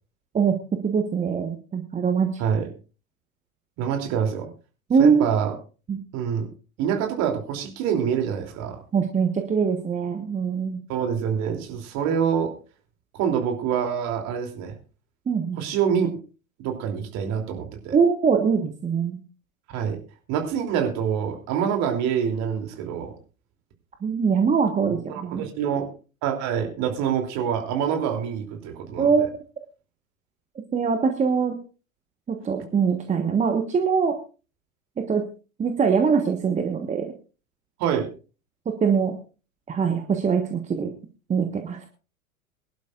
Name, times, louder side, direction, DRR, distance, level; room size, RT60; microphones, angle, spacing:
voice 1, 0.8-2.3 4.9-5.3 5.9-6.0 8.9-10.8 15.3-15.6 17.9-19.2 24.0-25.4 29.0-29.3 30.7-31.6 32.3-34.1 35.0-35.2 35.6-37.1 38.6-39.2 39.7-40.9 41.3-41.9, right 6 dB, 15° right, 5 dB, 1.4 m, -22 dB
voice 2, 3.8-4.5 5.0-5.5 6.1-6.5 6.8-8.8 10.9-12.5 13.1-14.7 15.6-16.1 16.6-17.9 19.7-20.0 20.3-23.1 24.9-25.9 26.2-29.3 37.8-38.1, right 8 dB, 40° right, 4 dB, 3.2 m, -26 dB
22.5 x 11.5 x 2.5 m, 0.35 s
figure-of-eight pair, 90°, 42 cm